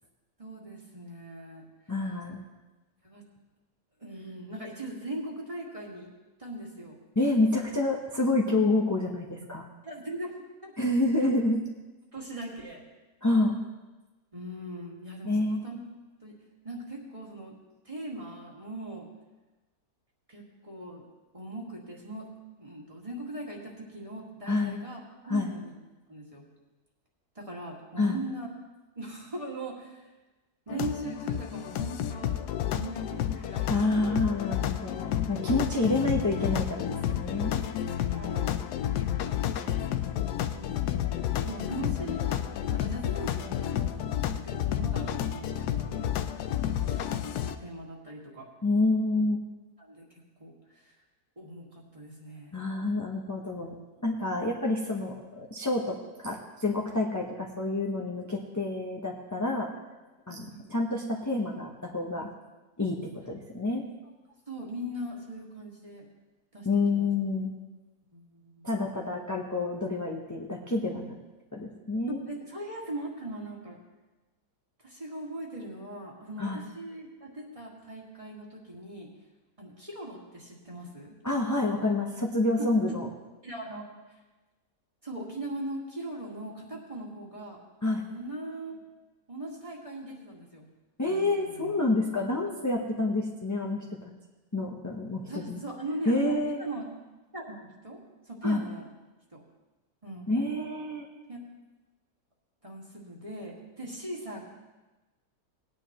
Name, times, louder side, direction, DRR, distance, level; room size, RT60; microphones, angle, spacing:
voice 1, 0.4-1.6 3.0-3.2 4.0-6.1 6.4-7.0 9.8-10.3 10.6-10.7 12.1-12.8 14.3-15.8 16.2-16.3 16.6-17.5 17.9-19.1 20.3-21.0 21.3-22.3 22.6-25.7 26.1-26.4 27.4-28.5 29.0-30.0 30.7-34.2 38.1-38.6 39.4-41.1 41.4-46.1 46.6-48.5 49.8-50.0 50.4-50.5 50.8-50.9 51.4-52.6 53.6-53.7 60.3-60.7 64.5-66.1 66.5-67.1 68.1-68.7 72.3-73.8 74.8-79.1 79.6-81.2 82.6-83.0 83.4-83.9 85.0-87.6 88.1-88.8 89.3-90.6 91.0-91.7 95.3-96.9 97.3-98.0 98.3-98.9 99.3-99.4 100.0-100.3 101.3-101.4 102.6-104.4, right 1 dB, 20° right, -2 dB, 1.9 m, -40 dB
voice 2, 1.9-2.4 7.2-9.7 10.8-11.6 13.2-13.6 15.2-15.6 24.5-24.8 25.3-25.5 28.0-28.2 33.7-37.5 48.6-49.4 52.5-53.7 54.0-59.7 60.3-62.3 62.8-63.8 66.6-67.5 68.6-71.2 71.5-72.2 76.4-76.6 81.2-83.1 87.8-88.0 91.0-94.1 94.5-95.6 96.1-96.6 98.4-98.6 100.3-101.1, left 2 dB, 15° left, -1 dB, 0.7 m, -28 dB
sound 1, 30.7-47.5, left 11 dB, 90° left, 1.2 m, -31 dB
18.5 x 9.8 x 3.0 m, 1.2 s
omnidirectional pair, 1.7 m